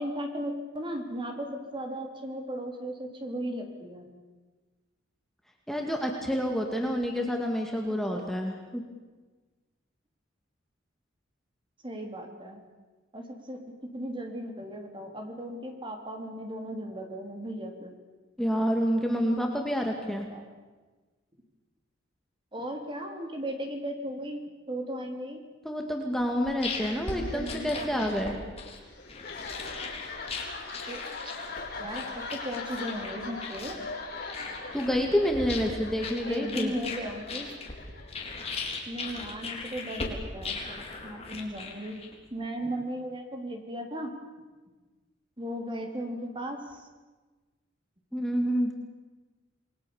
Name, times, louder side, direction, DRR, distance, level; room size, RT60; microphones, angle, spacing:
voice 1, 0.0-4.1 8.1-8.2 11.8-12.6 13.1-17.9 20.1-20.5 22.5-25.4 27.1-28.5 30.9-31.3 31.8-33.9 36.2-37.5 38.9-42.0 42.3-44.1 45.4-46.9, equal, 25° right, 4 dB, 3.5 m, -36 dB
voice 2, 5.7-8.8 18.4-20.3 25.6-28.4 34.7-36.7 48.1-48.8, equal, ahead, 1 dB, 2.1 m, -28 dB
sound 1, 26.2-42.3, left 3 dB, 35° left, 4.1 m, -39 dB
sound 2, 27.0-38.7, left 3 dB, 50° left, 5.8 m, -41 dB
28.0 x 21.5 x 7.2 m, 1.3 s
head